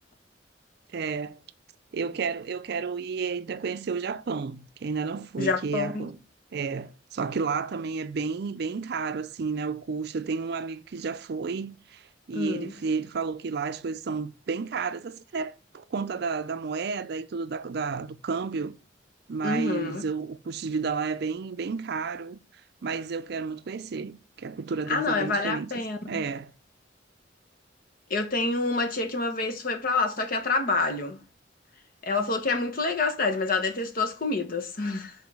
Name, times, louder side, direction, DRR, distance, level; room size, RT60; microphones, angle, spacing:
voice 1, 0.9-1.4 1.9-6.2 6.5-18.8 19.3-22.4 22.8-26.5, right 5 dB, 60° right, 0.4 m, -31 dB
voice 2, 5.4-6.1 12.3-12.7 19.4-20.0 24.9-26.2 28.1-31.2 32.0-35.1, left 3 dB, 50° left, 0.9 m, -27 dB
4.8 x 4.0 x 5.4 m
head